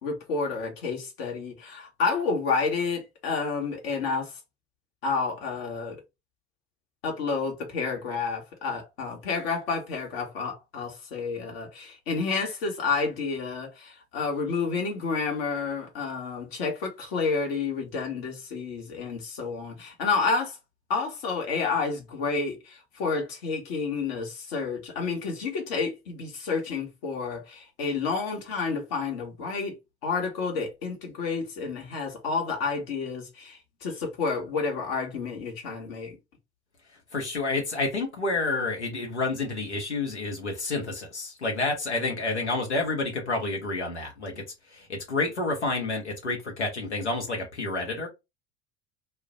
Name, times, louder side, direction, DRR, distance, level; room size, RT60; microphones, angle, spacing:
voice 1, 0.0-4.4 5.0-6.0 7.0-20.6 20.9-29.8 30.0-36.2, left 4 dB, 60° left, 1.2 m, -30 dB
voice 2, 37.1-44.4 44.7-48.1, left 3 dB, 85° left, 1.0 m, -29 dB
2.4 x 2.1 x 3.8 m
figure-of-eight pair, 70°, 34 cm